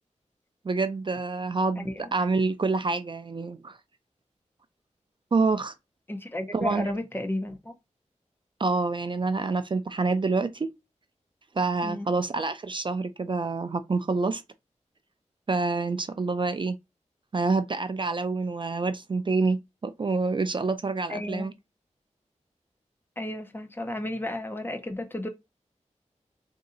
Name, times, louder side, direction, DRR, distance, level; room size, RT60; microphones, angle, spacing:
voice 1, 0.6-3.8 5.3-5.7 6.5-7.0 8.6-10.7 11.6-14.4 15.5-16.8 17.3-21.5, right 3 dB, 40° right, 0.4 m, -27 dB
voice 2, 1.8-2.1 6.1-7.7 11.8-12.1 21.1-21.5 23.2-25.3, left 1 dB, 15° left, 0.7 m, -33 dB
3.9 x 2.7 x 3.7 m
wide cardioid pair, 100°, 12 cm